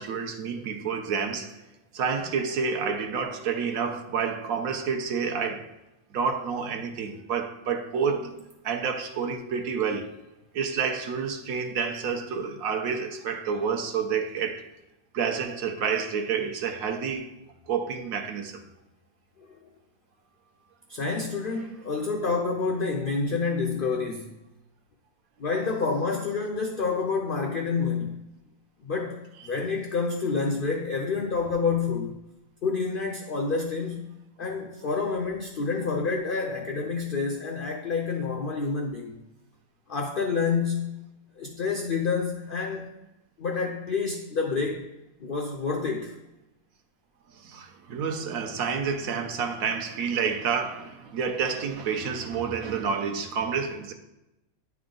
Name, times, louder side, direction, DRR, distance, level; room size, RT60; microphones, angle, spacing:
voice 1, 0.0-1.6 1.9-5.7 6.1-10.1 10.5-14.6 15.1-17.3 17.7-18.6 47.3-53.9, right 6 dB, 75° right, 1.1 m, -29 dB
voice 2, 20.9-24.3 25.4-28.2 28.8-32.2 32.6-34.1 34.4-39.2 39.9-41.0 41.4-42.9 43.4-44.9 45.2-46.1, left 4 dB, 65° left, 0.5 m, -28 dB
9.5 x 3.5 x 3.7 m
omnidirectional pair, 1.5 m